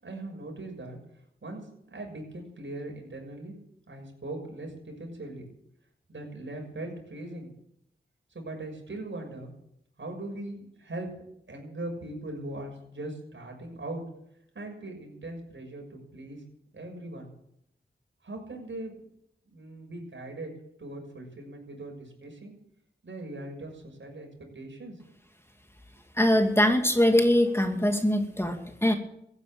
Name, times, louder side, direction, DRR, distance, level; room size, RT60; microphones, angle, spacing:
voice 1, 0.0-1.0 1.4-3.5 3.9-5.5 6.1-7.5 8.3-9.5 10.0-11.1 11.5-14.0 14.5-16.4 16.7-17.3 18.2-18.9 19.5-20.5 20.8-22.5 23.0-25.0, right 2 dB, 70° right, 1 dB, 6.6 m, -40 dB
voice 2, 26.1-29.0, left 1 dB, 10° left, 4 dB, 2.5 m, -22 dB
15.5 x 9.6 x 8.9 m, 0.76 s
cardioid pair, 45°, 20 cm